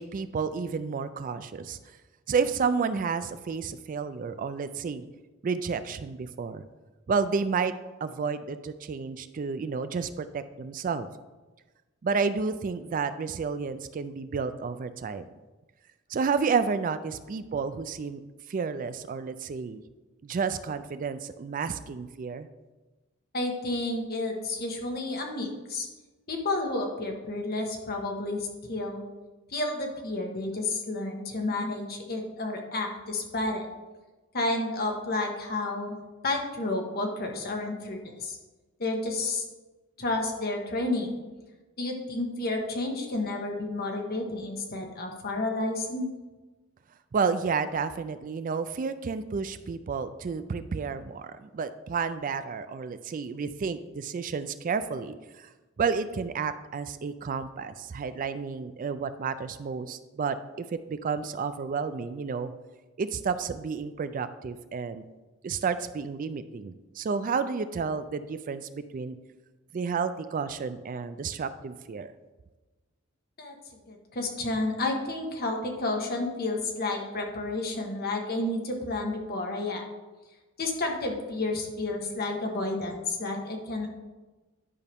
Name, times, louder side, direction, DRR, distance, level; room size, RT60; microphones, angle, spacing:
voice 1, 0.0-1.8 2.3-5.0 5.4-6.7 7.1-7.7 8.0-11.1 12.0-15.2 16.1-18.2 18.5-19.8 20.2-22.5 47.1-55.5 55.8-62.5 63.0-65.1 65.4-69.2 69.7-72.1, right 5 dB, 40° right, 11 dB, 0.3 m, -31 dB
voice 2, 23.3-25.9 26.3-29.0 29.5-33.7 34.3-35.9 36.2-38.4 38.8-39.4 40.0-41.2 41.8-46.1 73.4-73.5 73.9-79.8 80.6-84.0, left 2 dB, 50° left, 2 dB, 1.3 m, -31 dB
10.5 x 5.5 x 3.5 m, 1.2 s
head